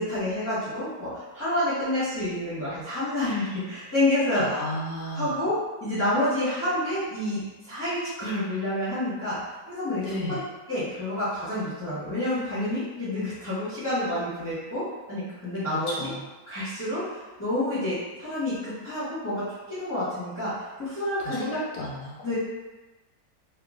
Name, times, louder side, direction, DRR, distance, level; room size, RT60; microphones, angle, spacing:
voice 1, 0.0-4.6 5.1-9.4 9.7-10.0 10.3-10.4 10.7-16.1 16.5-20.5 20.8-21.4 22.2-22.3, left 1 dB, 10° left, -14 dB, 0.8 m, -28 dB
voice 2, 4.4-5.4 10.0-10.4 15.7-16.2 21.2-22.1, left 1 dB, 75° left, -5 dB, 1.1 m, -33 dB
3.0 x 2.4 x 2.4 m, 1.2 s
omnidirectional pair, 1.8 m